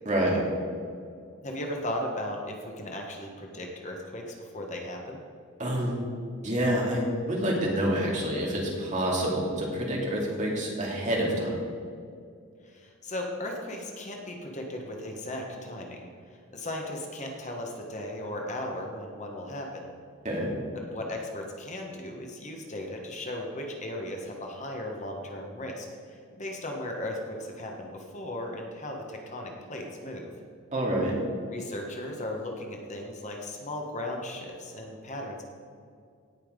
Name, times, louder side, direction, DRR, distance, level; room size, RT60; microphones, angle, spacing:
voice 1, 0.1-0.4 5.6-6.0 6.4-11.6 20.2-20.5 30.7-31.2, right 1 dB, 35° right, -3 dB, 2.5 m, -27 dB
voice 2, 1.4-5.2 12.6-19.9 20.7-30.3 31.5-35.4, left 1 dB, 35° left, 1 dB, 1.3 m, -36 dB
17.0 x 5.7 x 5.2 m, 2.3 s
head